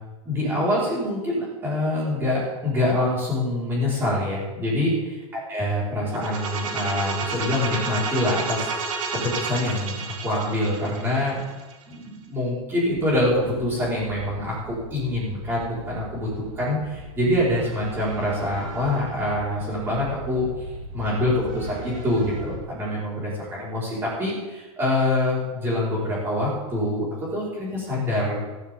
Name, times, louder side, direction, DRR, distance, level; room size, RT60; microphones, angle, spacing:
voice 1, 0.2-4.9 5.5-11.4 11.9-20.6 20.9-27.1 27.3-28.4, left 1 dB, 10° right, -6 dB, 5.1 m, -25 dB
sound 1, 6.1-11.9, right 4 dB, 70° right, 3.4 m, -30 dB
sound 2, 12.9-22.6, right 1 dB, 35° right, 4.8 m, -40 dB
15.5 x 14.5 x 3.8 m, 1.2 s
supercardioid pair, 180°, 18 cm